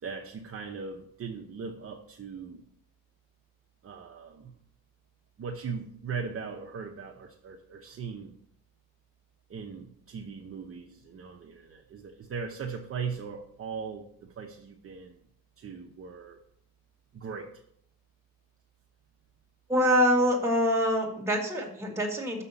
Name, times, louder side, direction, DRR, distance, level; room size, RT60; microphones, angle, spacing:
voice 1, 0.0-2.6 3.8-4.5 5.4-8.3 9.5-15.2 15.6-16.4 17.1-17.5, right 5 dB, 35° right, 0 dB, 0.8 m, -39 dB
voice 2, 19.7-22.4, equal, 5° right, -1 dB, 1.8 m, -25 dB
6.4 x 5.7 x 6.9 m, 0.68 s
cardioid pair, 145°, 37 cm